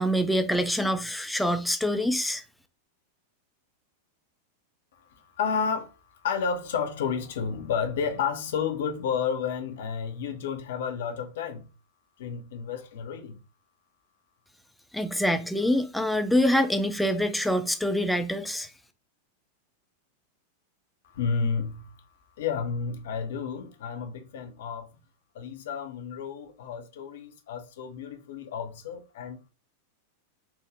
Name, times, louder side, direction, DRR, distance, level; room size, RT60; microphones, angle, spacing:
voice 1, 0.0-2.4 14.9-18.7, equal, ahead, 0.4 m, -25 dB
voice 2, 5.4-5.9 6.2-11.7 12.2-13.4 21.1-21.9 22.4-24.9 25.3-29.5, left 6 dB, 55° left, 0.6 m, -31 dB
3.5 x 2.1 x 3.2 m
figure-of-eight pair, 90°, 0 cm